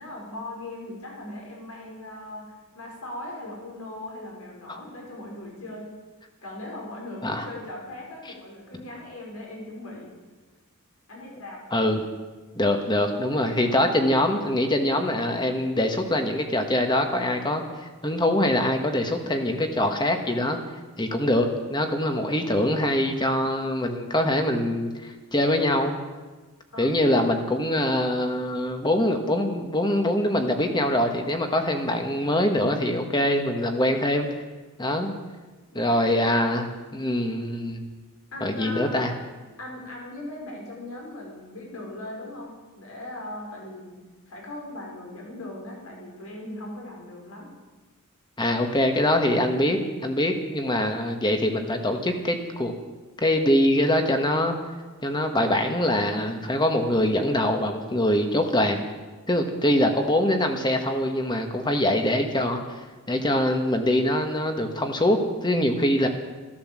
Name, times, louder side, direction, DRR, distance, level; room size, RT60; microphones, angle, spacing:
voice 1, 0.0-5.9 6.4-10.1 11.1-11.6 26.7-26.9 35.7-36.0 38.3-39.1 39.6-47.5, left 1 dB, 75° left, -1 dB, 5.0 m, -39 dB
voice 2, 11.7-12.0 12.5-17.6 18.0-20.6 21.0-25.9 26.8-34.4 34.8-35.1 35.7-37.8 38.4-39.1 48.4-52.7 53.2-54.5 55.0-58.8 59.3-62.6 63.1-66.1, left 1 dB, 20° left, 5 dB, 1.6 m, -23 dB
14.0 x 13.0 x 7.6 m, 1.3 s
head